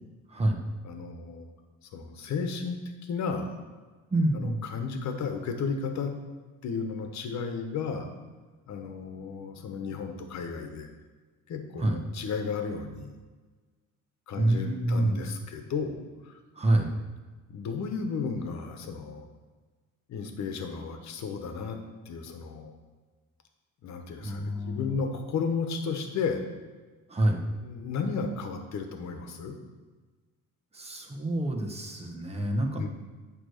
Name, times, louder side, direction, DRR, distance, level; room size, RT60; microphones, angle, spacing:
voice 1, 0.8-1.5 1.8-3.6 4.3-6.1 6.6-8.1 8.7-10.9 11.5-13.1 14.3-16.4 17.5-19.3 20.1-21.8 22.0-22.8 23.8-26.4 27.6-29.6 32.8-32.9, left 5 dB, 60° left, 5 dB, 1.3 m, -33 dB
voice 2, 4.1-4.6 11.8-12.0 14.4-15.2 16.5-16.9 24.2-24.9 27.1-27.5 30.7-32.8, right 1 dB, 20° right, 2 dB, 1.3 m, -27 dB
9.0 x 3.3 x 6.6 m, 1.3 s
cardioid pair, 85°, 31 cm